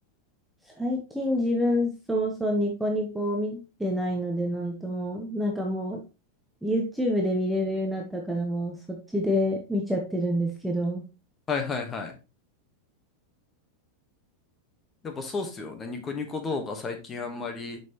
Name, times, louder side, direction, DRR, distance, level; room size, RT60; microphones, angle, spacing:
voice 1, 0.8-6.0 6.6-11.0, equal, ahead, 0 dB, 0.9 m, -27 dB
voice 2, 11.5-12.1 15.0-17.8, left 4 dB, 15° left, 6 dB, 1.2 m, -32 dB
7.1 x 5.6 x 2.9 m, 0.30 s
supercardioid pair, 165°, 0 cm